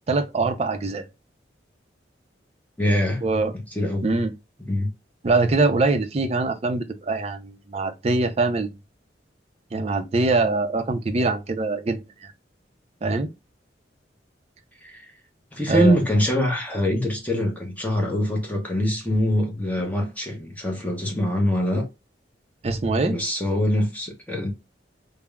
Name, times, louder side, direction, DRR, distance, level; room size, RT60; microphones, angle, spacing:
voice 1, 0.1-1.1 3.2-3.5 4.0-4.3 5.2-8.8 9.7-12.3 13.0-13.3 15.7-16.0 22.6-23.2, right 3 dB, 35° right, 0.4 m, -23 dB
voice 2, 2.8-3.2 3.7-4.1 4.7-4.9 14.8-15.1 15.5-21.9 23.0-24.5, equal, 10° left, 0.6 m, -24 dB
3.4 x 2.0 x 2.2 m
head